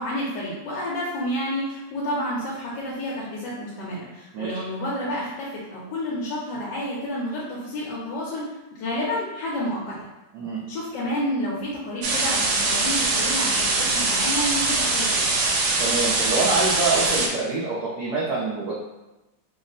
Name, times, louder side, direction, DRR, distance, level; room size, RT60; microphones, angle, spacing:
voice 1, 0.0-10.0 10.7-15.3, left 1 dB, 70° left, -5 dB, 1.3 m, -30 dB
sound 1, 12.0-17.3, right 3 dB, 90° right, 1.5 m, -22 dB
voice 2, 15.8-18.7, right 3 dB, 70° right, -6 dB, 1.1 m, -25 dB
3.5 x 2.1 x 3.8 m, 1.0 s
omnidirectional pair, 2.2 m